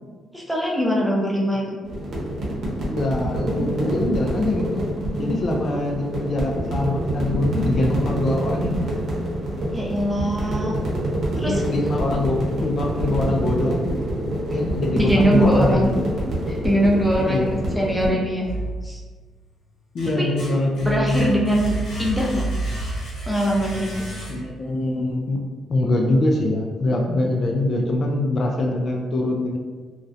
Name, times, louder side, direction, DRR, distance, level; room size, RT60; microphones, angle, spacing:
voice 1, 0.3-1.8 9.7-10.7 11.4-11.6 15.0-15.9 16.5-18.5 18.8-19.0 20.2-20.3 20.8-22.4 23.3-23.9, equal, ahead, -3 dB, 0.6 m, -22 dB
sound 1, 1.8-18.1, right 1 dB, 65° right, 0.8 m, -26 dB
voice 2, 2.9-4.9 5.2-8.9 11.3-13.8 14.5-16.0 17.3-17.5 19.9-21.3 24.3-25.4 25.7-29.6, left 2 dB, 50° left, 1 dB, 0.3 m, -23 dB
sound 2, 18.4-19.3 19.7-24.7, right 1 dB, 80° left, 1.1 m, -31 dB
2.4 x 2.1 x 2.5 m, 1.4 s
cardioid pair, 90°, 0 cm